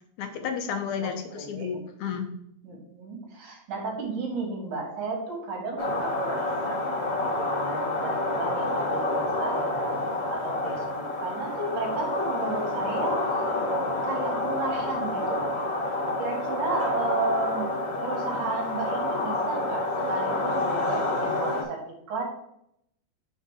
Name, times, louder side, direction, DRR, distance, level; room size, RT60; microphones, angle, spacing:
voice 1, 0.2-2.3, left 7 dB, 75° left, 5 dB, 2.2 m, -32 dB
voice 2, 1.4-1.7 2.6-13.2 14.0-15.6 16.2-17.8 18.0-21.8 22.1-22.2, right 3 dB, 80° right, 0 dB, 3.5 m, -33 dB
sound 1, 5.8-21.6, left 2 dB, 50° left, 0.7 m, -28 dB
8.2 x 4.0 x 4.9 m, 0.75 s
omnidirectional pair, 3.5 m